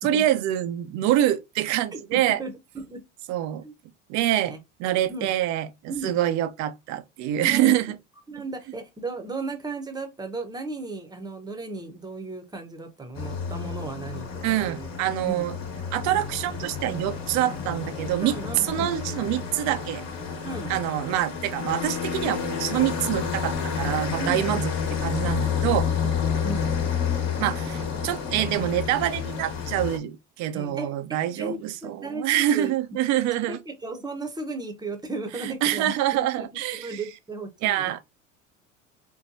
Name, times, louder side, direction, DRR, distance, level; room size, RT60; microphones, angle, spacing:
voice 1, 0.0-2.4 3.3-3.6 4.1-8.0 14.4-15.6 15.9-18.4 18.6-20.0 20.7-24.7 25.0-25.9 27.4-33.6 35.4-37.0 37.6-38.0, right 12 dB, 45° right, 0.6 m, -26 dB
voice 2, 1.9-3.0 3.6-3.7 4.5-4.6 5.1-5.3 5.9-6.2 7.4-7.8 8.3-14.9 15.2-15.4 18.2-19.0 20.4-20.7 24.2-24.6 26.3-26.7 30.5-32.7 33.5-37.9, right 3 dB, 10° right, 0.9 m, -35 dB
sound 1, 13.1-30.0, left 7 dB, 45° left, 1.3 m, -30 dB
4.4 x 2.3 x 2.7 m
hypercardioid pair, 80°, 38 cm